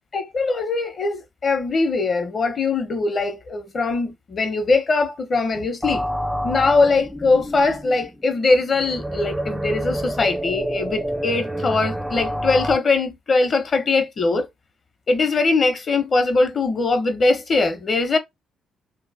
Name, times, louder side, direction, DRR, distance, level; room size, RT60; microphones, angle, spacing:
voice 1, 0.1-6.1 6.4-14.5 15.1-18.2, left 3 dB, 45° left, 1.0 m, -21 dB
sound 1, 5.8-12.8, equal, 5° right, 0.4 m, -28 dB
3.1 x 3.0 x 4.1 m
cardioid pair, 90°, 0 cm